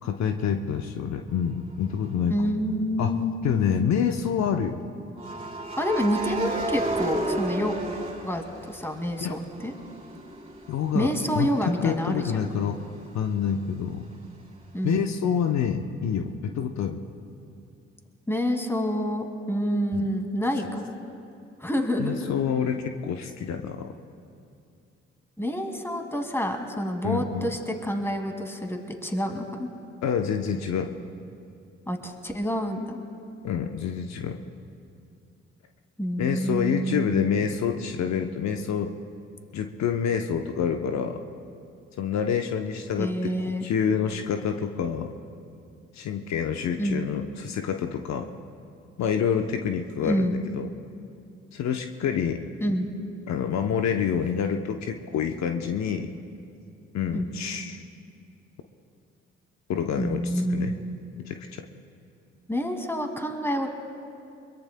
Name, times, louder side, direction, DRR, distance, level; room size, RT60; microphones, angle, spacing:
voice 1, 0.0-2.4 3.0-3.1 3.4-4.8 9.2-9.3 10.7-12.8 13.1-14.0 14.8-17.0 19.9-20.1 22.0-23.9 27.0-27.5 30.0-30.9 33.4-34.4 36.2-38.9 39.5-41.2 42.0-45.1 45.9-48.3 49.0-50.7 51.5-52.4 53.3-56.1 56.9-57.8 59.7-60.2 60.5-60.7 61.2-61.6, left 7 dB, 60° left, 5 dB, 0.8 m, -27 dB
sound 1, 1.9-2.1 5.2-9.1 9.5-13.0, right 1 dB, 20° right, 3.3 m, -33 dB
voice 2, 2.3-3.3 5.8-7.8 8.2-9.7 10.9-12.4 14.7-15.1 18.3-21.0 21.6-22.3 25.4-29.7 31.9-33.0 36.0-37.4 43.0-43.7 46.8-47.1 50.0-50.4 52.6-52.9 57.1-57.3 60.0-60.8 62.5-63.7, equal, 10° left, 4 dB, 2.2 m, -28 dB
22.5 x 22.0 x 2.2 m, 2.5 s
hypercardioid pair, 45°, 30 cm